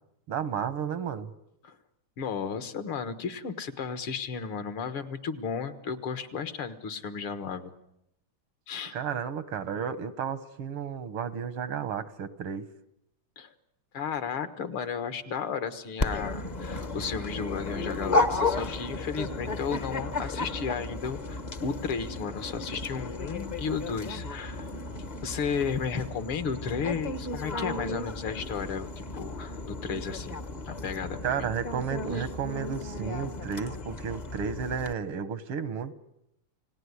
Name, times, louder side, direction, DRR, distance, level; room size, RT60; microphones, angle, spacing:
voice 1, 0.3-1.3 8.9-12.7 31.2-35.9, right 7 dB, 90° right, 13 dB, 2.2 m, -32 dB
voice 2, 2.2-7.7 8.7-9.0 13.4-13.5 13.9-24.7 25.2-30.4 30.7-31.5 32.2-32.3, left 6 dB, 75° left, 10 dB, 2.3 m, -34 dB
Dog, 16.0-34.9, left 2 dB, 35° left, 0.6 m, -34 dB
29.5 x 18.5 x 9.8 m, 0.83 s
omnidirectional pair, 2.4 m